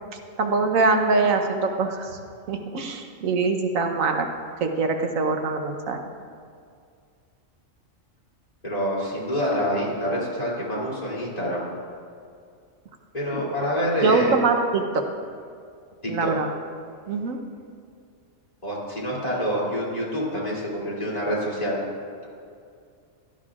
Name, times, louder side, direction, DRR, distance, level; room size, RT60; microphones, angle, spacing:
voice 1, 0.4-2.2 2.5-4.3 4.6-6.0 13.3-13.4 14.0-15.0 16.1-16.5 17.1-17.4, right 4 dB, 85° right, 4 dB, 1.3 m, -23 dB
voice 2, 8.6-11.6 13.1-14.4 16.0-16.3 18.6-21.8, equal, 30° left, -7 dB, 3.0 m, -27 dB
16.5 x 12.5 x 2.5 m, 2.3 s
omnidirectional pair, 1.4 m